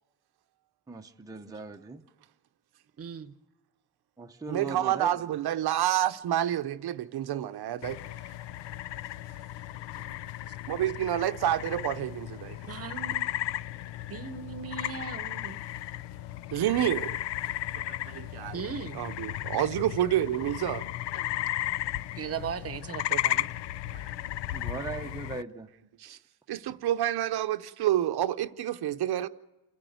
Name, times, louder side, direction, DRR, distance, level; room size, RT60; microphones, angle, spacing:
voice 1, 0.9-2.0 4.2-5.1 24.5-25.7, right 4 dB, 10° right, 0.7 m, -39 dB
voice 2, 3.0-3.3 12.7-13.3 14.1-15.6 18.5-19.0 22.2-23.5, right 7 dB, 35° right, 0.9 m, -38 dB
voice 3, 4.5-8.0 8.2-8.3 10.7-12.6 16.5-17.2 17.9-18.6 18.9-20.9 23.9-24.2 26.0-26.2 26.5-29.3, right 12 dB, 65° right, 0.8 m, -29 dB
sound 1, 7.8-25.4, left 14 dB, 75° left, 0.6 m, -35 dB
29.0 x 10.5 x 9.3 m
cardioid pair, 155°, 42 cm